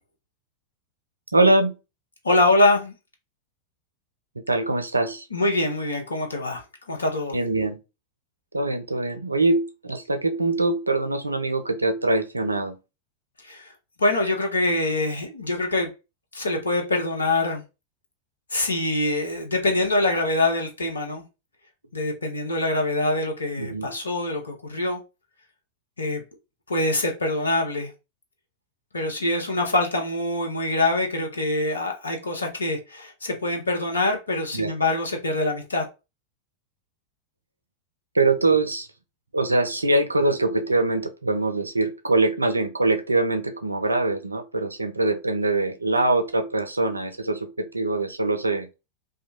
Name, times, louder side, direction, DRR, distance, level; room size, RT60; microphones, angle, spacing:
voice 1, 1.3-1.7 4.5-5.3 7.3-7.8 8.5-12.8 23.6-23.9 34.5-34.7 38.1-38.9 39.3-48.7, right 2 dB, 80° right, 0.4 m, -23 dB
voice 2, 2.2-2.9 5.3-6.6 6.9-7.4 13.4-13.7 14.0-15.9 16.3-17.6 18.5-21.2 21.9-25.0 26.0-26.2 26.7-27.9 28.9-35.9, left 2 dB, 75° left, 0.6 m, -24 dB
2.6 x 2.2 x 2.9 m
figure-of-eight pair, 90°, 0 cm